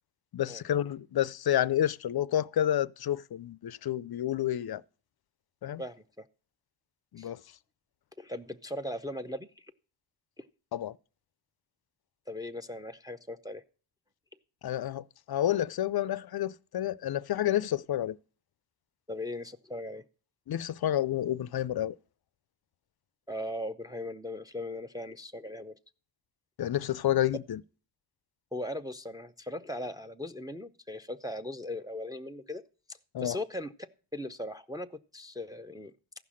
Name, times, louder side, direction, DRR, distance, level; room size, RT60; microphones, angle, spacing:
voice 1, 0.3-4.8 5.6-5.8 7.1-7.4 10.7-11.0 14.6-18.2 20.5-21.9 26.6-27.6 33.1-33.4, left 11 dB, 50° left, 0.5 m, -29 dB
voice 2, 8.2-9.7 10.4-10.5 12.3-13.6 19.1-20.0 23.3-25.7 28.5-32.6 32.9-33.7 34.1-35.9, left 1 dB, 10° right, 0.5 m, -38 dB
14.5 x 5.8 x 6.3 m
cardioid pair, 60°, 49 cm